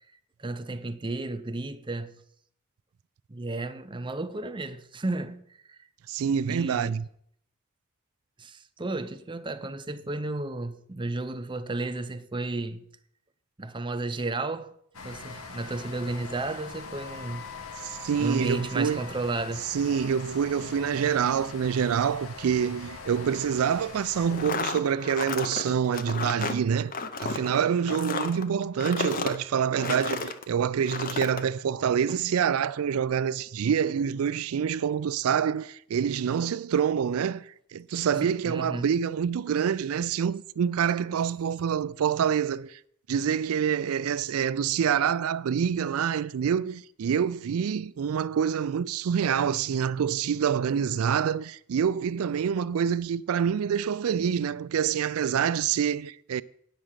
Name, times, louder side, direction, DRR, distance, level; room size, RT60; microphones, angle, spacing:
voice 1, 0.4-2.1 3.3-5.8 6.5-6.9 8.4-12.8 13.6-14.7 15.0-17.5 17.8-17.9 18.2-19.7 38.1-38.9, right 2 dB, 20° right, 0.6 m, -33 dB
voice 2, 6.1-7.1 17.8-19.0 19.6-26.9 27.2-42.8 43.1-56.4, right 7 dB, 75° right, 0.4 m, -26 dB
sound 1, 14.9-24.5, left 4 dB, 70° left, 1.0 m, -42 dB
sound 2, 24.3-30.4 30.8-31.4, left 4 dB, 40° left, 0.7 m, -33 dB
9.1 x 6.3 x 7.3 m
head